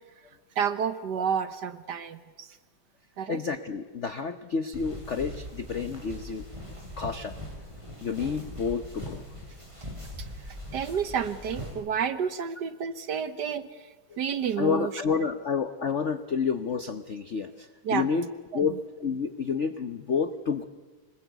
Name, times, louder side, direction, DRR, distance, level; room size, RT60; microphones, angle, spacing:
voice 1, 0.6-2.6 3.2-3.4 10.5-13.7 14.2-14.9 17.8-18.1 18.5-18.7, right 7 dB, 60° right, 12 dB, 1.3 m, -30 dB
voice 2, 3.3-6.4 7.0-7.4 8.0-9.2 14.1-14.2 14.6-18.3 18.5-20.6, left 5 dB, 60° left, 9 dB, 0.7 m, -29 dB
sound 1, 4.7-11.7, equal, 15° right, 6.7 m, -41 dB
25.5 x 20.5 x 8.1 m, 1.3 s
omnidirectional pair, 2.4 m